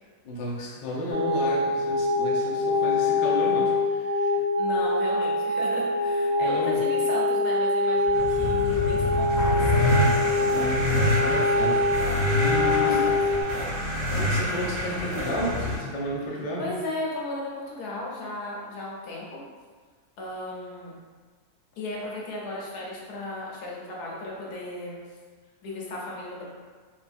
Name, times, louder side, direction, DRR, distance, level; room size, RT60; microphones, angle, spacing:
voice 1, 0.2-4.3 6.4-6.8 10.4-11.8 12.4-13.0 14.2-16.7, equal, 55° left, -4 dB, 0.5 m, -32 dB
sound 1, 1.1-13.4, left 2 dB, 65° right, 0.6 m, -24 dB
voice 2, 4.3-9.9 12.8-13.2 16.6-19.4 20.2-20.9 21.8-25.0 25.6-26.4, left 2 dB, 90° left, -3 dB, 1.4 m, -35 dB
sound 2, 7.9-15.8, left 1 dB, 80° right, 1.8 m, -26 dB
4.3 x 2.3 x 2.6 m, 1.5 s
omnidirectional pair, 1.6 m